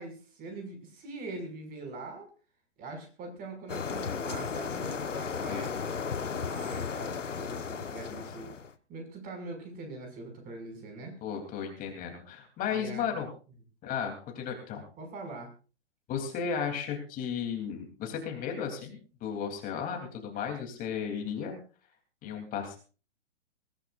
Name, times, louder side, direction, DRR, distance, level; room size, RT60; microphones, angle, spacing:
voice 1, 0.0-2.3 2.8-8.5 8.9-11.2 12.7-13.1 15.0-15.5, right 2 dB, 25° right, 4 dB, 6.1 m, -42 dB
sound 1, 3.7-8.7, left 6 dB, 90° left, 1.3 m, -35 dB
voice 2, 8.1-8.5 11.2-13.3 13.8-14.8 16.1-21.6 22.2-22.8, left 7 dB, 25° left, 3 dB, 3.4 m, -34 dB
22.0 x 16.5 x 2.6 m, 0.36 s
hypercardioid pair, 135°, 36 cm